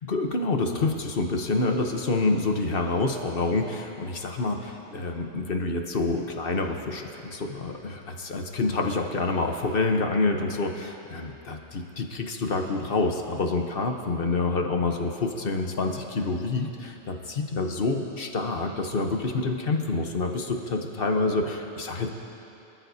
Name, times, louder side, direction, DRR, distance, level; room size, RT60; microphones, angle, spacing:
voice 1, 0.1-22.1, left 3 dB, 50° left, 3 dB, 1.2 m, -27 dB
25.5 x 13.5 x 2.8 m, 3.0 s
omnidirectional pair, 1.3 m